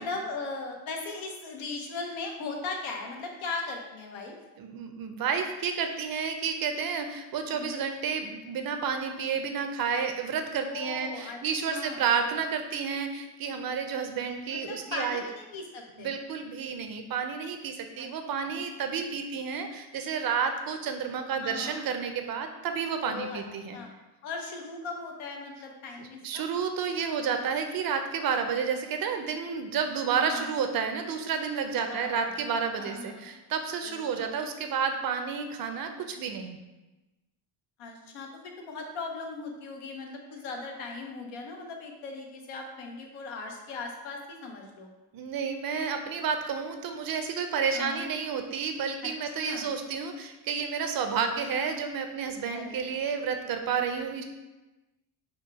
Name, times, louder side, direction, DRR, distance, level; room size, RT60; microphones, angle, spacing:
voice 1, 0.0-4.3 7.5-7.8 10.6-11.4 11.7-12.0 14.5-16.1 18.0-18.1 18.4-18.6 21.4-21.8 23.0-23.4 23.7-23.9 24.2-26.4 30.2-30.5 31.9-32.3 32.8-33.4 33.8-34.2 37.8-44.9 47.7-48.1 49.4-49.7 52.5-53.0, left 3 dB, 75° left, 2 dB, 1.0 m, -38 dB
voice 2, 4.6-15.2 16.0-23.8 26.0-36.6 45.1-54.2, right 6 dB, 45° right, 6 dB, 0.5 m, -31 dB
4.4 x 2.3 x 4.7 m, 1.1 s
cardioid pair, 105°, 49 cm